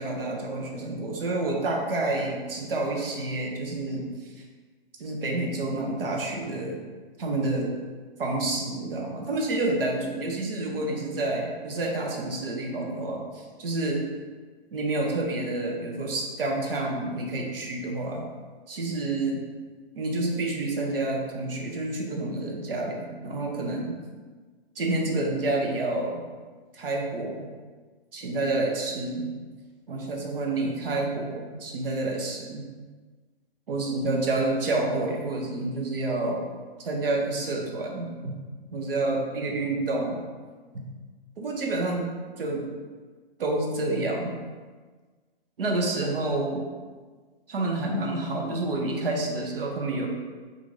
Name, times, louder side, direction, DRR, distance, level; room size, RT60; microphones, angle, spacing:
voice 1, 0.0-4.1 5.0-6.8 7.2-7.7 8.2-14.0 14.7-18.2 18.7-19.4 19.9-24.0 24.8-26.2 26.7-27.5 28.1-29.3 29.9-32.7 33.7-36.4 36.8-38.4 38.7-40.2 40.7-40.9 41.4-42.1 42.4-42.7 43.4-44.3 45.6-46.6 47.5-50.1, right 2 dB, 65° right, 0 dB, 0.8 m, -28 dB
3.7 x 2.5 x 3.2 m, 1.4 s
hypercardioid pair, 175°, 31 cm